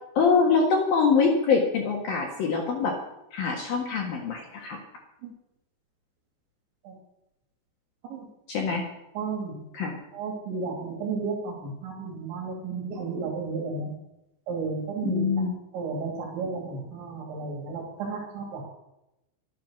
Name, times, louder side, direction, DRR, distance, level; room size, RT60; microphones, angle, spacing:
voice 1, 0.2-3.0 3.3-4.8 8.5-8.8 9.7-10.0 15.0-15.5, left 5 dB, 60° left, 0 dB, 3.0 m, -24 dB
voice 2, 9.2-9.5 10.1-13.9 14.5-15.2 15.7-18.6, right 4 dB, 75° right, 0 dB, 4.9 m, -33 dB
13.0 x 12.5 x 6.5 m, 0.88 s
omnidirectional pair, 5.4 m